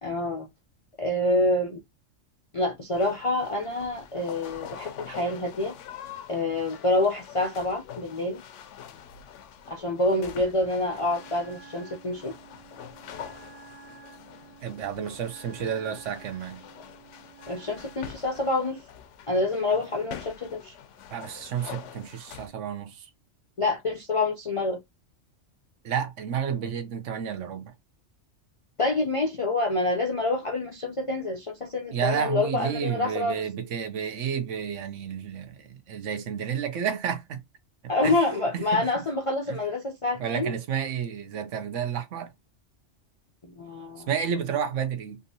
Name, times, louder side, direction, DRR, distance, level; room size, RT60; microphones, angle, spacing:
voice 1, 0.0-0.5 1.0-1.8 2.5-5.7 6.3-8.4 9.7-12.3 17.5-18.8 19.3-20.7 23.6-24.8 28.8-33.5 37.9-40.5 43.4-44.1, left 2 dB, 50° left, 0.4 m, -27 dB
sound 1, 2.9-22.5, left 8 dB, 75° left, 0.9 m, -45 dB
Wind instrument woodwind instrument, 10.9-18.2, right 4 dB, 60° right, 1.5 m, -51 dB
voice 2, 14.6-16.6 21.1-23.1 25.8-27.7 31.9-37.4 38.0-38.2 38.5-38.8 39.5-39.6 40.2-42.3 44.1-45.2, right 8 dB, 75° right, 1.0 m, -31 dB
3.4 x 2.7 x 2.7 m
omnidirectional pair, 1.3 m